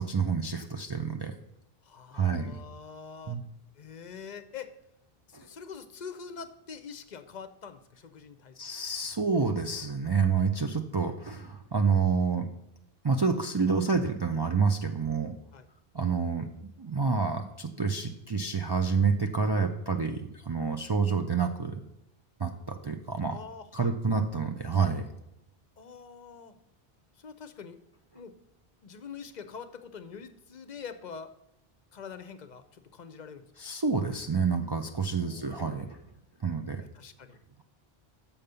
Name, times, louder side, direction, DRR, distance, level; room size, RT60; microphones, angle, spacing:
voice 1, 0.0-1.3 2.1-2.6 3.3-3.4 8.6-12.5 13.0-15.3 15.9-16.4 16.8-21.8 22.4-23.4 23.7-25.0 33.6-35.9 36.4-36.8, right 5 dB, 35° right, 4 dB, 0.4 m, -28 dB
voice 2, 1.8-3.4 3.8-4.7 5.3-8.6 15.5-15.7 23.3-24.2 25.8-26.6 27.2-27.8 28.1-28.3 28.8-31.3 31.9-33.4 35.2-35.8 36.9-37.4, left 6 dB, 50° left, 10 dB, 0.7 m, -45 dB
7.2 x 5.3 x 6.7 m, 0.86 s
omnidirectional pair, 1.1 m